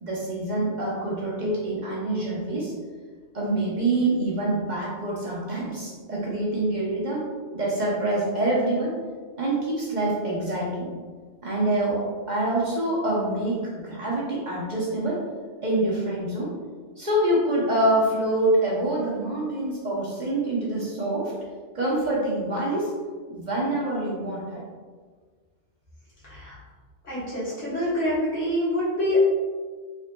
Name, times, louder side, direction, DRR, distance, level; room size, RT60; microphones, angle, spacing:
voice 1, 0.0-2.7 3.3-7.2 7.5-9.0 9.4-10.9 11.4-15.2 15.6-16.5 17.0-21.3 21.7-22.9 23.3-24.6, right 1 dB, 45° right, -5 dB, 0.9 m, -26 dB
voice 2, 26.2-26.6 27.0-29.2, left 1 dB, 90° left, -10 dB, 2.0 m, -25 dB
3.9 x 3.5 x 2.2 m, 1.5 s
omnidirectional pair, 1.2 m